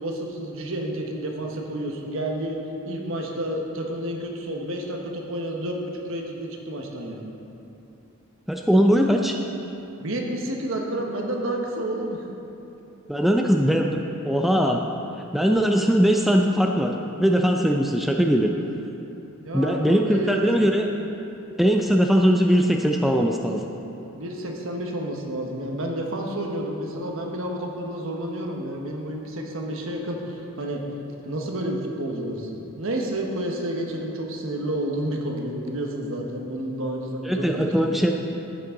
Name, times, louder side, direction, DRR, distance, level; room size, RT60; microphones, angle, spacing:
voice 1, 0.0-2.6 2.8-7.2 10.0-12.2 19.4-20.7 24.1-30.8 31.2-32.5 32.8-37.7, right 1 dB, 65° right, 1 dB, 1.3 m, -30 dB
voice 2, 8.5-9.4 13.1-14.0 14.2-14.8 15.3-16.9 17.2-18.5 19.5-20.9 21.6-23.6 37.3-38.1, equal, ahead, 1 dB, 0.4 m, -20 dB
12.5 x 8.7 x 3.8 m, 3.0 s
head